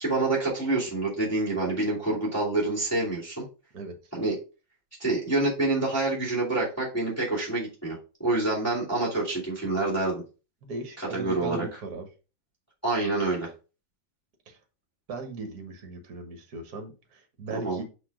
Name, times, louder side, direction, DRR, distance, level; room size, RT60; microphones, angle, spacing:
voice 1, 0.0-3.4 4.1-4.4 5.0-10.2 11.0-11.6 12.8-13.5 17.5-17.8, right 2 dB, 10° left, -6 dB, 2.6 m, -27 dB
voice 2, 10.6-12.1 14.5-14.6 15.1-17.8, right 3 dB, 55° right, 5 dB, 1.8 m, -38 dB
6.0 x 3.5 x 4.8 m, 0.32 s
omnidirectional pair, 2.0 m